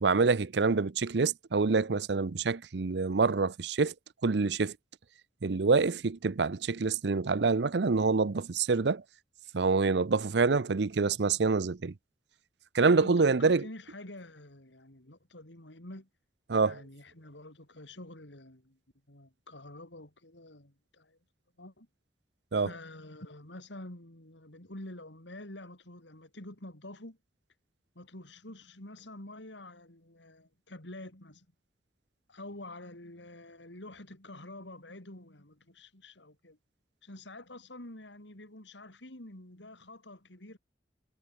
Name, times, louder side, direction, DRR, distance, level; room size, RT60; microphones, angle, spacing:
voice 1, 0.0-3.9 4.2-4.7 5.4-9.0 9.5-11.9 12.7-13.6 16.5-16.8 22.5-22.7, right 4 dB, 70° right, 0.6 m, -26 dB
voice 2, 13.0-16.1 16.6-18.8 19.1-21.2 21.6-21.9 22.5-27.2 27.9-31.5 32.3-36.6 37.0-40.6, left 1 dB, 90° left, 4.4 m, -47 dB
head